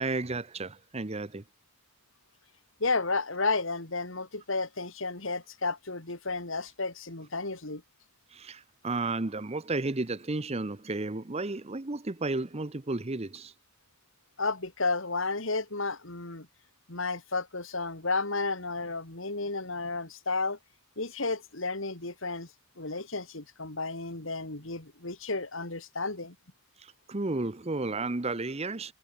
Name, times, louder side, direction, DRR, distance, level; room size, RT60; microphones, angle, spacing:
voice 1, 0.0-1.4 8.3-13.5 26.8-28.9, right 3 dB, 30° right, 0.8 m, -33 dB
voice 2, 2.8-7.8 14.4-16.5 16.9-20.6 21.0-22.5 22.8-26.3, left 3 dB, 65° left, 3.0 m, -32 dB
head